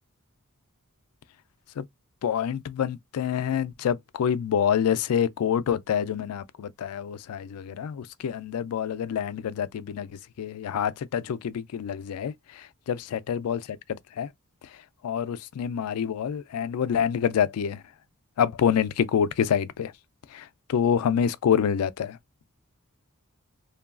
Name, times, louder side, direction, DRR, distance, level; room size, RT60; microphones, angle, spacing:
voice 1, 2.2-10.1 10.4-14.3 15.0-17.8 18.4-19.9 20.3-22.2, left 8 dB, 85° left, 0.3 m, -27 dB
3.0 x 2.3 x 2.3 m
head